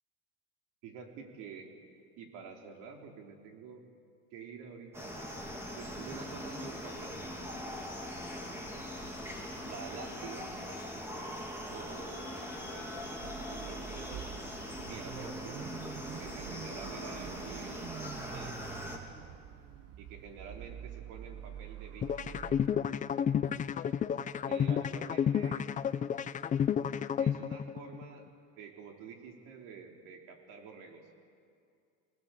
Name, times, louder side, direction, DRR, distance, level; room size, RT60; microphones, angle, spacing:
voice 1, 0.8-1.7 2.2-3.8 4.3-5.2 5.7-7.3 9.6-10.6 11.7-14.3 14.9-15.6 16.2-17.9 18.3-18.6 20.0-22.4 24.4-25.7 27.2-31.1, right 6 dB, 65° right, 3 dB, 3.6 m, -48 dB
sound 1, 4.9-19.0, equal, 5° right, 3.1 m, -41 dB
Car / Idling / Accelerating revving vroom, 13.2-22.7, right 10 dB, 50° right, 1.1 m, -46 dB
sound 2, 22.0-28.0, left 8 dB, 25° left, 0.5 m, -31 dB
24.5 x 19.0 x 8.4 m, 2.3 s
cardioid pair, 140°, 32 cm